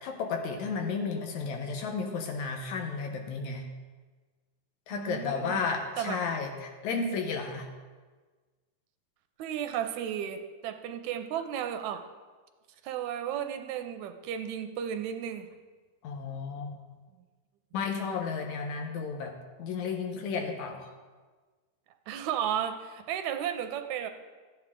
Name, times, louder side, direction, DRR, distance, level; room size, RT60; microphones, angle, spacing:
voice 1, 0.0-3.6 4.9-7.7 16.0-16.8 17.7-20.9, left 5 dB, 75° left, 4 dB, 2.4 m, -33 dB
voice 2, 4.9-5.6 6.0-6.2 9.4-12.0 12.8-15.5 22.1-24.1, right 9 dB, 80° right, 8 dB, 1.9 m, -34 dB
14.5 x 9.4 x 3.7 m, 1.4 s
omnidirectional pair, 3.4 m